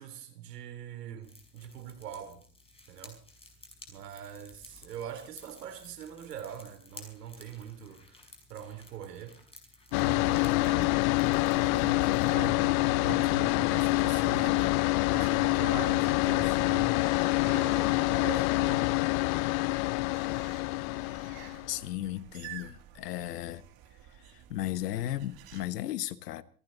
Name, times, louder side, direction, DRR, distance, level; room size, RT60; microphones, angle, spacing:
voice 1, 0.0-2.4 2.9-3.2 3.9-8.2 8.5-9.4 9.9-17.1 17.4-18.9, right 9 dB, 90° right, 3.5 m, -43 dB
sound 1, 1.2-12.5, left 2 dB, 10° left, 5.8 m, -54 dB
sound 2, 9.9-21.8, left 22 dB, 65° left, 0.6 m, -26 dB
sound 3, 9.9-25.7, right 11 dB, 50° right, 3.1 m, -53 dB
voice 2, 21.7-23.6 24.5-26.4, left 13 dB, 85° left, 1.3 m, -35 dB
27.5 x 11.5 x 4.1 m
supercardioid pair, 110°, 46 cm